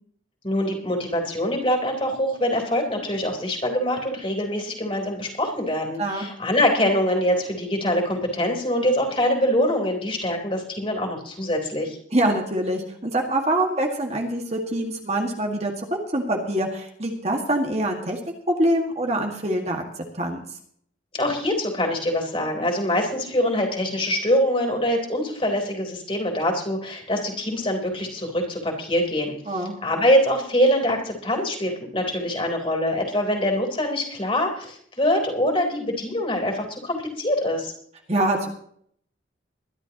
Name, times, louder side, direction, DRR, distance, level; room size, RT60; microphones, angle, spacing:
voice 1, 0.4-12.0 21.1-37.7, left 1 dB, 30° left, 2 dB, 3.7 m, -24 dB
voice 2, 12.1-18.2 18.4-19.8 20.1-20.4 29.5-29.7 38.1-38.5, right 1 dB, 35° right, 2 dB, 1.9 m, -24 dB
22.5 x 12.0 x 3.0 m, 0.63 s
head